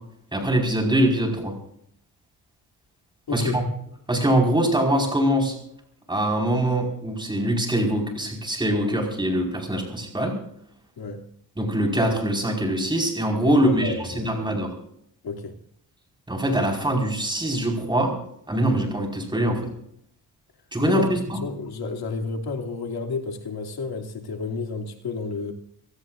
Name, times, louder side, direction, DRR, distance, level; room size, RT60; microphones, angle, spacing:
voice 1, 0.3-1.5 3.3-3.6 4.1-5.5 6.1-10.3 11.6-14.7 16.3-18.1 18.5-19.7 20.7-21.1, right 1 dB, 10° right, 4.9 m, -23 dB
voice 2, 3.3-3.7 11.0-11.2 13.4-14.5 15.2-15.6 20.8-25.5, left 4 dB, 85° left, 2.7 m, -31 dB
26.0 x 17.5 x 2.6 m
wide cardioid pair, 170°, 37 cm